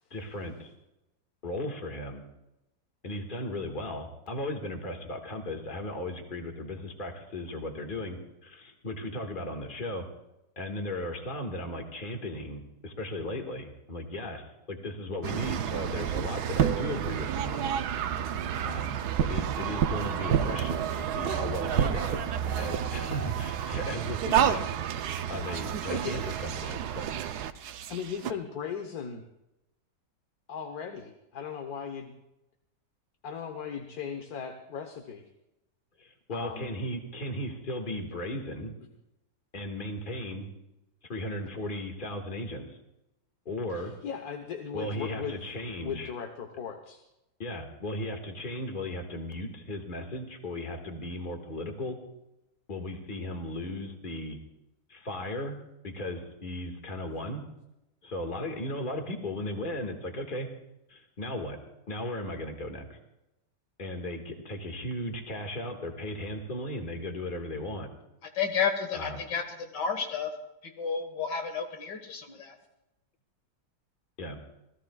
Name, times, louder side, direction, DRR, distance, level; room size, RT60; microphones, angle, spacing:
voice 1, 0.1-0.7 1.4-2.2 3.0-10.1 10.6-17.7 18.6-24.7 25.3-27.2 36.0-38.7 39.5-40.5 41.1-42.8 43.5-43.9 44.7-46.1 47.4-52.0 52.7-54.4 54.9-55.6 55.8-57.4 58.0-60.5 60.9-61.6 61.9-63.0 63.8-67.9 68.9-69.2 74.2-74.4, left 1 dB, 30° left, 3 dB, 1.9 m, -36 dB
sound 1, 15.2-28.3, right 9 dB, 70° right, 1.2 m, -30 dB
voice 2, 27.9-29.2 30.5-32.2 33.2-35.2 36.3-36.7 43.7-45.4 45.8-47.0, left 7 dB, 65° left, 5 dB, 1.6 m, -37 dB
voice 3, 68.4-70.3 70.6-72.6, left 6 dB, 85° left, 5 dB, 2.2 m, -31 dB
27.0 x 17.0 x 2.4 m, 0.91 s
omnidirectional pair, 1.8 m